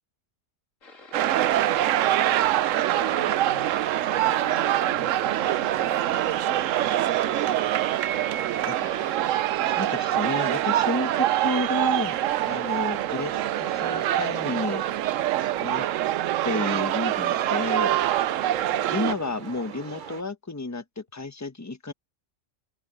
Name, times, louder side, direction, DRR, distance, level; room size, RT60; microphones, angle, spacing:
sound 1, 0.8-12.9, left 2 dB, 80° left, 3.2 m, -49 dB
sound 2, 1.1-19.1, right 13 dB, 80° right, 1.0 m, -24 dB
voice 1, 2.0-2.4 2.8-7.5 19.0-19.4, left 2 dB, 40° left, 6.9 m, -46 dB
sound 3, 4.1-20.2, right 7 dB, 50° right, 0.7 m, -42 dB
voice 2, 8.7-9.1 9.6-14.8 15.6-15.9 16.4-18.0 18.9-21.9, left 2 dB, 15° left, 1.0 m, -31 dB
omnidirectional pair, 1.3 m